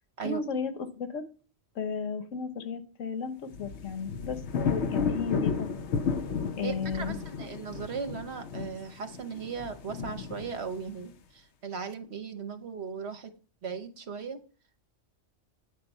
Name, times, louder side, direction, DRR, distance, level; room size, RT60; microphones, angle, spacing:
voice 1, 0.2-1.2 1.7-4.4 4.7-5.7 6.6-7.2, left 6 dB, 90° left, 8 dB, 1.3 m, -34 dB
sound 1, 3.5-11.0, left 6 dB, 70° left, 1.0 m, -33 dB
voice 2, 6.6-11.1 11.6-13.3 13.6-14.4, right 6 dB, 60° right, 8 dB, 1.2 m, -37 dB
9.1 x 3.8 x 5.5 m, 0.39 s
omnidirectional pair, 1.3 m